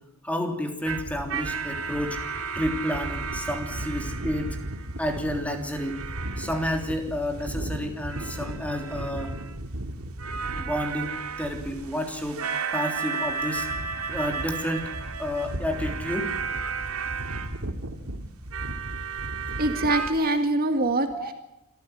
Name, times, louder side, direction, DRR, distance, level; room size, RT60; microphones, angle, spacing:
voice 1, 0.2-2.2 2.5-4.6 5.0-6.0 6.4-9.3 10.5-12.5 12.7-13.7 14.1-14.9 15.2-16.3 21.1-21.3, equal, 5° left, 4 dB, 3.4 m, -30 dB
sound 1, 0.8-20.1, right 4 dB, 90° right, 2.2 m, -33 dB
voice 2, 19.6-21.3, right 2 dB, 45° right, 6 dB, 2.0 m, -24 dB
26.5 x 14.5 x 9.4 m, 0.89 s
head